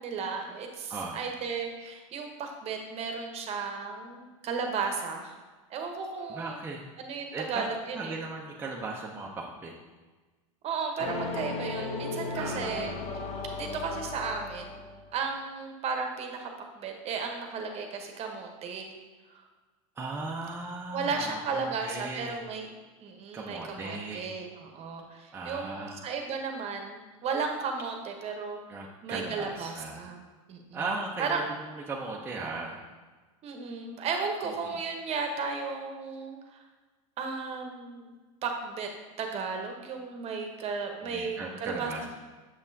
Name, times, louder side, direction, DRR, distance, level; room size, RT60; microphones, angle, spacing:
voice 1, 0.0-5.3 5.7-6.6 7.0-8.2 10.6-12.9 13.5-14.8 15.1-18.9 20.9-22.7 23.0-28.6 29.0-30.2 30.5-30.8 31.2-31.4 33.4-36.6 37.2-38.1 38.4-38.9 39.2-42.1, right 5 dB, 35° right, 3 dB, 1.0 m, -34 dB
voice 2, 0.9-1.2 6.3-6.8 7.3-7.7 7.9-9.7 12.3-12.9 20.0-22.4 23.3-24.3 25.3-26.0 28.7-30.1 30.7-32.8 34.7-34.8 41.0-42.1, right 3 dB, 15° right, -3 dB, 0.6 m, -37 dB
sound 1, 11.0-15.1, left 3 dB, 35° left, 0.7 m, -36 dB
7.1 x 5.3 x 2.7 m, 1.3 s
hypercardioid pair, 110°, 17 cm